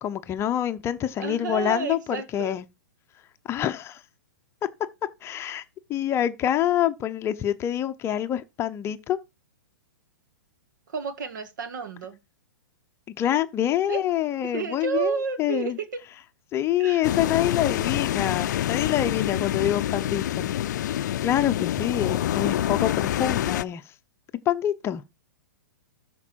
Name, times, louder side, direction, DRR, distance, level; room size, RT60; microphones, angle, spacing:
voice 1, 0.0-2.6 3.5-4.0 5.2-5.6 5.9-9.2 13.2-15.8 16.5-20.5 21.2-23.8 24.5-25.0, left 11 dB, 25° left, 0.7 m, -26 dB
voice 2, 1.2-2.6 10.9-12.2 13.9-14.0 14.4-15.7 16.8-17.0, right 6 dB, 70° right, 2.0 m, -31 dB
sound 1, 17.0-23.6, left 12 dB, 65° left, 0.4 m, -26 dB
13.0 x 4.6 x 4.5 m
hypercardioid pair, 125°, 10 cm